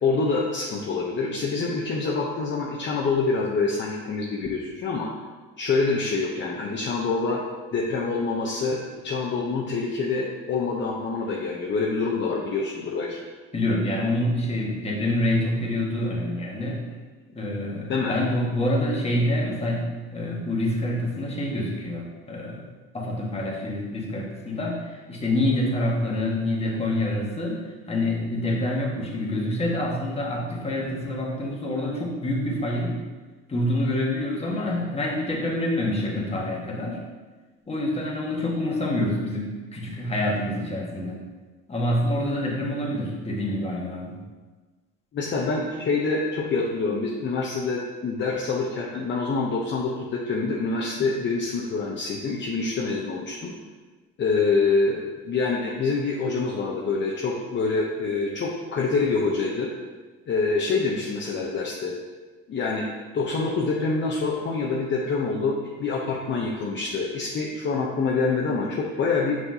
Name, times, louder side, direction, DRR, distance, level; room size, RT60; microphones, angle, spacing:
voice 1, 0.0-5.1 5.6-7.4 7.7-13.2 17.9-18.2 45.1-53.5 54.2-59.7 60.3-61.9 62.5-62.9 63.1-69.4, left 4 dB, 40° left, -2 dB, 0.8 m, -26 dB
voice 2, 13.5-16.8 17.3-22.6 22.9-33.0 33.5-37.0 37.7-41.2 41.7-44.2, left 1 dB, 20° left, -2 dB, 1.5 m, -26 dB
5.9 x 5.7 x 2.8 m, 1.3 s
supercardioid pair, 85°, 29 cm